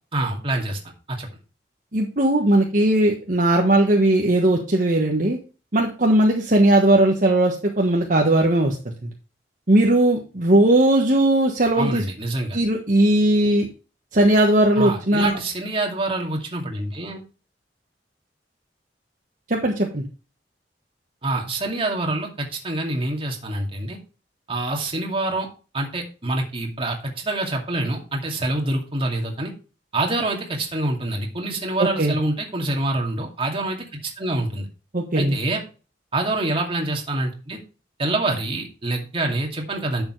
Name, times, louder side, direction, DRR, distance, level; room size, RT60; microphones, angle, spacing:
voice 1, 0.1-0.8 1.1-1.3 11.8-12.6 14.8-17.2 21.2-24.0 24.5-25.5 25.7-29.5 29.9-34.7 35.1-35.6 36.1-37.6 38.0-40.0, right 2 dB, 30° right, 1 dB, 2.4 m, -26 dB
voice 2, 1.9-5.4 5.7-9.1 9.7-12.0 12.5-13.7 14.1-15.4 19.5-20.0 31.8-32.2 34.9-35.3, right 1 dB, 50° right, 1 dB, 1.4 m, -18 dB
10.5 x 7.1 x 3.2 m, 0.34 s
head